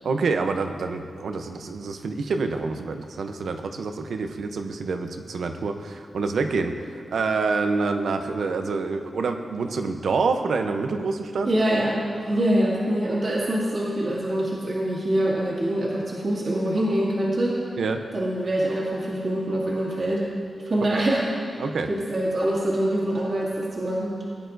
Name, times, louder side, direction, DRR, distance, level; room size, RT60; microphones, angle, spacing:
voice 1, 0.0-11.5 17.8-18.0 20.9-21.0 21.6-21.9, right 4 dB, 85° right, 6 dB, 0.7 m, -27 dB
voice 2, 11.4-12.0 12.2-17.6 18.1-20.2 20.7-21.3 21.9-24.1, right 1 dB, 50° right, -6 dB, 2.0 m, -24 dB
17.0 x 10.0 x 2.6 m, 2.1 s
wide cardioid pair, 160°, 0 cm